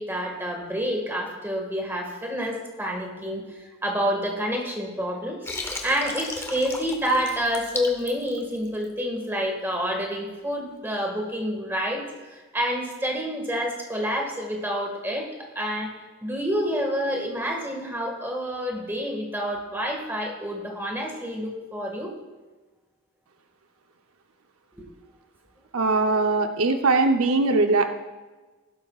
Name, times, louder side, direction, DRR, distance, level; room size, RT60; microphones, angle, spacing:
voice 1, 0.0-5.4 5.8-15.3 15.5-15.9 16.2-22.1 24.8-24.9 26.0-26.2, equal, 10° right, 0 dB, 1.8 m, -28 dB
Water, 5.4-8.9, left 2 dB, 10° left, 0.8 m, -35 dB
voice 2, 25.7-27.9, right 3 dB, 85° right, 6 dB, 0.8 m, -21 dB
16.0 x 12.0 x 2.4 m, 1.2 s
head